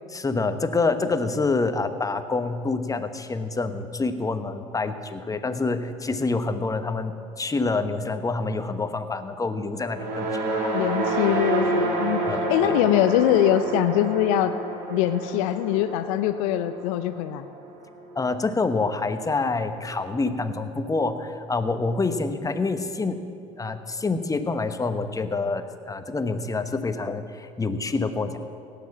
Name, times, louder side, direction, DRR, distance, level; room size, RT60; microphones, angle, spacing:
voice 1, 0.1-10.7 12.3-12.7 18.1-23.2 23.6-28.4, left 3 dB, 20° left, 9 dB, 1.0 m, -27 dB
sound 1, 9.8-18.2, right 2 dB, 65° right, 2.8 m, -29 dB
voice 2, 10.7-12.2 12.5-14.5 14.9-17.4, left 11 dB, 75° left, 11 dB, 0.5 m, -23 dB
17.0 x 6.9 x 7.4 m, 2.4 s
hypercardioid pair, 75°, 17 cm